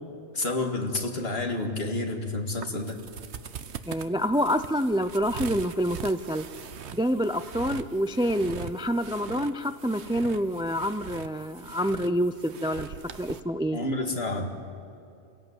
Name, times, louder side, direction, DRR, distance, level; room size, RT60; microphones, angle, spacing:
voice 1, 0.3-3.0 13.7-14.5, left 2 dB, 60° left, 3 dB, 2.3 m, -29 dB
sound 1, 2.5-13.4, right 7 dB, 75° right, 1.2 m, -42 dB
voice 2, 3.9-6.4 6.9-13.8, equal, 5° right, 11 dB, 0.4 m, -27 dB
29.0 x 17.0 x 8.1 m, 2.6 s
omnidirectional pair, 1.2 m